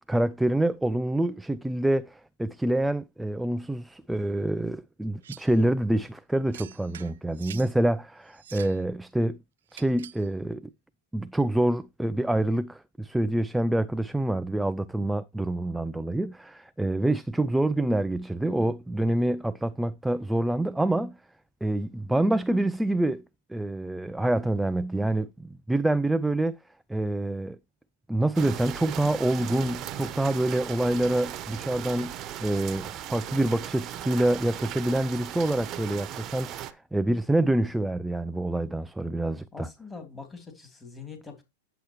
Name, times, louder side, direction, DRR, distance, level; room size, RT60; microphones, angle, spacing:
voice 1, 0.1-9.4 9.7-10.7 11.1-21.2 21.6-23.2 23.5-26.6 26.9-27.6 28.1-32.1 32.4-39.7, right 1 dB, 5° right, 0.4 m, -26 dB
sound 1, 5.2-5.6 6.5-7.7 8.3-8.8 9.7-10.3, right 10 dB, 85° right, 0.5 m, -46 dB
sound 2, 28.3-36.7, right 11 dB, 35° right, 1.0 m, -38 dB
voice 2, 39.5-41.4, left 5 dB, 15° left, 3.0 m, -43 dB
9.9 x 7.9 x 3.0 m
hypercardioid pair, 130°, 0 cm